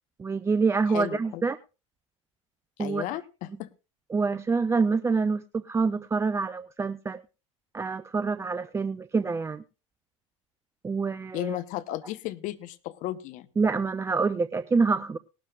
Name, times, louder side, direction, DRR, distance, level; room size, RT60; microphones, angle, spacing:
voice 1, 0.2-1.6 2.8-3.0 4.1-7.2 7.7-9.6 10.8-11.6 13.6-15.2, right 4 dB, 15° right, 13 dB, 0.5 m, -26 dB
voice 2, 0.9-1.4 2.8-3.7 11.3-13.5, left 15 dB, 50° left, 13 dB, 0.9 m, -34 dB
19.5 x 12.0 x 2.4 m, 0.31 s
hypercardioid pair, 80°, 17 cm